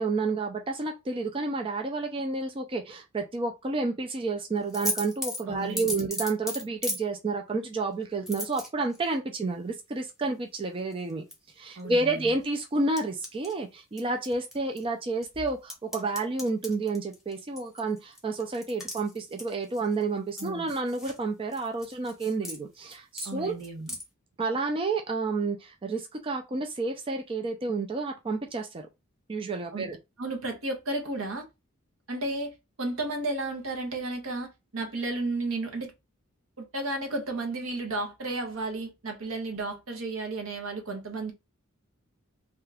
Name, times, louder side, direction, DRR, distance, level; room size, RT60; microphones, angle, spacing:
voice 1, 0.0-11.2 11.6-23.5 24.4-28.9 29.3-30.0, right 3 dB, 25° right, 0.4 m, -30 dB
sound 1, 4.7-7.0 8.3-9.0 10.9-11.3 11.8-11.9 13.0-13.5 14.0-14.8 15.2-20.0 20.4-21.2 21.5-22.6 22.9-23.3 23.6-24.0, left 1 dB, ahead, 0.9 m, -36 dB
voice 2, 5.5-6.0 11.8-12.3 20.4-20.7 23.2-23.9 29.7-29.9 30.2-31.5 32.1-35.9 36.6-41.3, right 2 dB, 70° right, 0.9 m, -33 dB
2.8 x 2.3 x 3.3 m
head